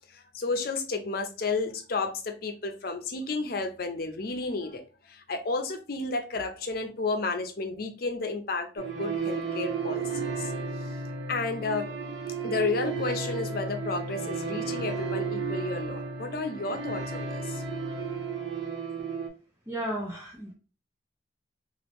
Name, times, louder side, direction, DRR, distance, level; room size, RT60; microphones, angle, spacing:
voice 1, 0.1-10.5 11.3-11.9 12.4-17.6, left 3 dB, 55° left, 0.6 m, -32 dB
sound 1, 8.8-19.3, right 4 dB, 70° right, 1.0 m, -33 dB
voice 2, 19.7-20.5, right 1 dB, 15° right, 0.5 m, -34 dB
3.3 x 2.5 x 3.0 m
head